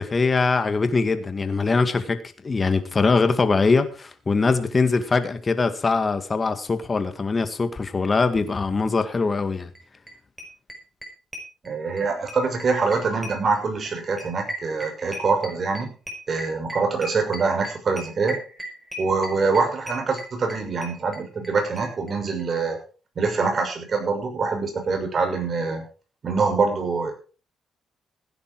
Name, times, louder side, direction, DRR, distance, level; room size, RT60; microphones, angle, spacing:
voice 1, 0.0-9.7, left 4 dB, 30° left, 1.9 m, -22 dB
sound 1, 9.7-9.8 10.1-10.2 10.4-12.0 12.3-21.5 21.8-21.9 22.1-22.2 22.4-22.5, equal, 10° right, 5.7 m, -36 dB
voice 2, 11.6-15.9 16.3-18.4 19.0-22.8 23.2-25.8 26.2-27.1, right 4 dB, 45° right, 6.4 m, -24 dB
16.5 x 10.0 x 4.7 m
cardioid pair, 90°, 0 cm